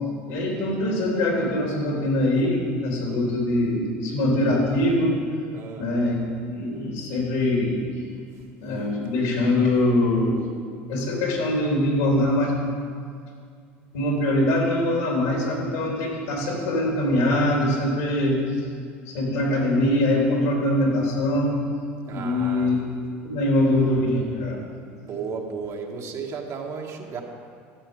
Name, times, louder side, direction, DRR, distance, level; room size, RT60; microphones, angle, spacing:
voice 1, 0.3-5.2 5.7-6.1 6.5-7.8 8.6-10.4 10.9-12.6 13.9-18.4 19.1-21.6 22.1-22.7 23.2-24.6, left 1 dB, 75° left, -1 dB, 3.2 m, -23 dB
voice 2, 5.5-5.9 8.3-8.4 22.0-22.7 25.0-27.2, right 5 dB, 50° right, 1 dB, 1.6 m, -34 dB
13.0 x 7.8 x 5.3 m, 2.2 s
hypercardioid pair, 80°, 7 cm